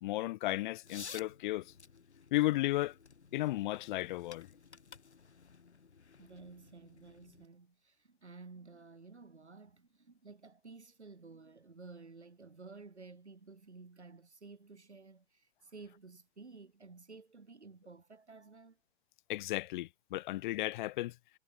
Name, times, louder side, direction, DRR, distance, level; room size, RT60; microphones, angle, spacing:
voice 1, 0.0-1.7 2.3-2.9 3.3-4.5 19.3-21.1, left 16 dB, 45° left, 0.9 m, -34 dB
sound 1, 0.8-7.4, left 5 dB, 85° left, 1.8 m, -54 dB
voice 2, 6.2-18.8, right 4 dB, 85° right, 5.7 m, -53 dB
figure-of-eight pair, 105°, 33 cm